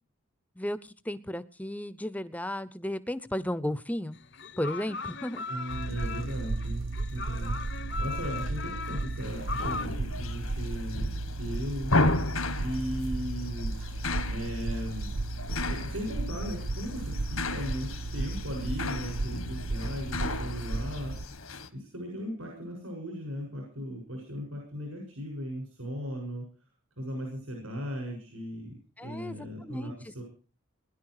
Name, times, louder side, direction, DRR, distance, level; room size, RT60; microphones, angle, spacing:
voice 1, 0.6-4.2 4.6-5.4 29.0-30.1, left 1 dB, 5° left, 16 dB, 0.7 m, -34 dB
sound 1, 4.2-9.9, left 4 dB, 55° left, 0.9 m, -38 dB
voice 2, 5.5-11.1 11.4-11.9 12.6-13.8 14.3-15.1 15.7-21.2 21.7-26.5 27.0-30.2, equal, 75° right, 0 dB, 7.2 m, -37 dB
sound 2, 5.7-21.2, right 2 dB, 60° right, 0.7 m, -34 dB
sound 3, 9.2-21.7, left 2 dB, 80° left, 1.8 m, -34 dB
21.0 x 11.5 x 4.8 m, 0.39 s
head